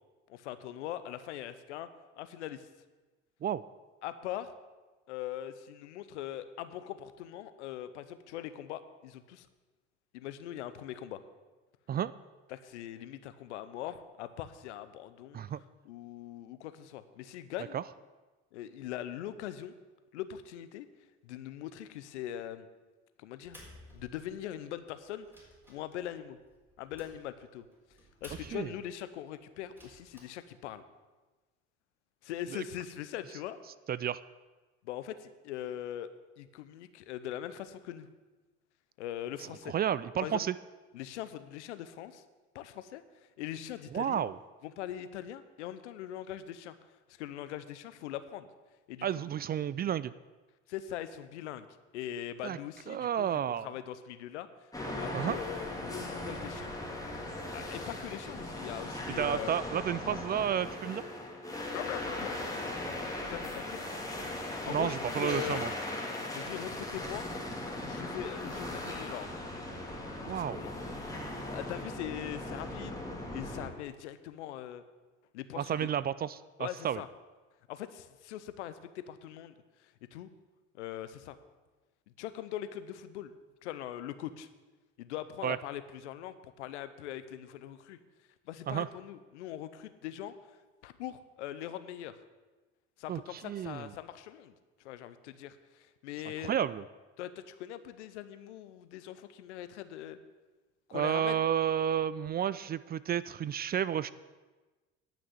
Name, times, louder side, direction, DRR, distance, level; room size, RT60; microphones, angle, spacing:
voice 1, 0.3-1.9 2.1-2.7 4.0-4.5 5.1-9.5 10.1-11.2 12.5-15.4 15.9-17.8 18.5-19.7 20.1-20.9 21.2-22.7 23.2-23.6 23.9-25.3 25.7-26.4 26.8-27.6 28.2-30.8 32.2-33.6 34.8-36.1 36.4-38.1 39.0-39.7 40.2-40.4 40.9-42.2 42.5-43.0 43.4-44.2 44.6-46.7 47.2-48.5 48.9-49.1 50.7-51.7 51.9-56.7 57.5-59.5 61.7-62.3 63.3-63.8 64.6-65.6 66.3-67.3 67.8-69.3 70.3-70.7 71.5-73.0 73.3-74.8 75.3-75.9 76.6-77.1 77.7-79.5 79.8-80.3 80.8-81.4 82.2-83.3 83.6-84.5 85.0-88.0 88.5-90.3 90.8-92.2 93.0-94.5 94.8-96.5 97.2-100.2 100.9-101.4, left 11 dB, 85° left, 12 dB, 0.8 m, -41 dB
sound 1, 23.4-24.6 25.0-28.9 29.6-30.2, left 1 dB, 5° right, 4.3 m, -54 dB
voice 2, 33.9-34.2 39.7-40.5 43.9-44.4 49.0-50.1 52.4-52.6 52.9-53.7 55.1-55.4 59.2-61.0 64.7-65.7 70.2-70.6 75.6-77.0 85.4-85.6 88.7-88.9 93.1-93.9 96.4-96.8 100.9-104.1, right 9 dB, 30° right, 17 dB, 0.4 m, -31 dB
sound 2, 54.7-73.7, left 1 dB, 10° left, 2.8 m, -38 dB
10.5 x 6.0 x 8.3 m, 1.2 s
hypercardioid pair, 70°, 34 cm